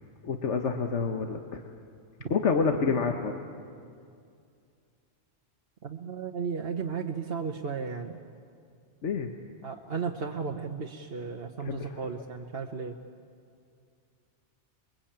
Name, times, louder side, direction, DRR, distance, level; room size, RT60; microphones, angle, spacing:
voice 1, 0.2-1.6 2.3-3.4 9.0-9.3 11.6-11.9, left 5 dB, 85° left, 5 dB, 1.5 m, -28 dB
voice 2, 5.8-8.2 9.6-12.9, right 5 dB, 60° right, 2 dB, 1.3 m, -34 dB
28.5 x 22.0 x 8.8 m, 2.3 s
omnidirectional pair, 1.2 m